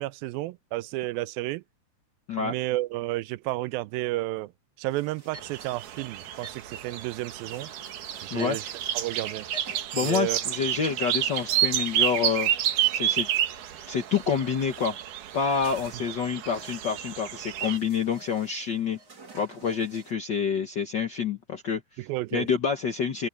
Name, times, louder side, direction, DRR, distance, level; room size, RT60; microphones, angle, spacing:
voice 1, 0.0-1.6 2.4-4.5 4.8-7.7 8.2-8.6 8.9-9.5 10.0-10.4 22.0-22.5, right 18 dB, 90° right, 2.4 m, -31 dB
sound 1, 4.9-20.1, right 2 dB, 30° right, 3.5 m, -50 dB
sound 2, 5.3-17.8, right 11 dB, 70° right, 2.7 m, -30 dB
voice 2, 9.9-12.5 12.9-13.3 13.9-14.9 15.3-19.0 19.3-21.8 22.3-23.3, left 6 dB, 80° left, 0.9 m, -27 dB
open air
omnidirectional pair, 4.1 m